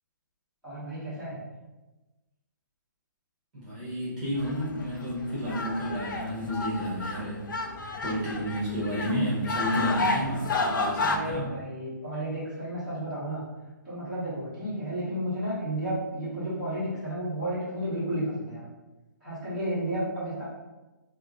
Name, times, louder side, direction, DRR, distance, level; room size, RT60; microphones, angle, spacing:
voice 1, 0.6-1.4 11.0-13.4 13.8-18.6 19.2-20.4, right 1 dB, ahead, -17 dB, 1.1 m, -32 dB
voice 2, 3.5-7.5 8.0-11.5, equal, 25° right, -8 dB, 1.0 m, -31 dB
sound 1, 4.4-11.2, left 3 dB, 75° left, 0.4 m, -31 dB
3.1 x 2.1 x 3.6 m, 1.1 s
hypercardioid pair, 170°, 11 cm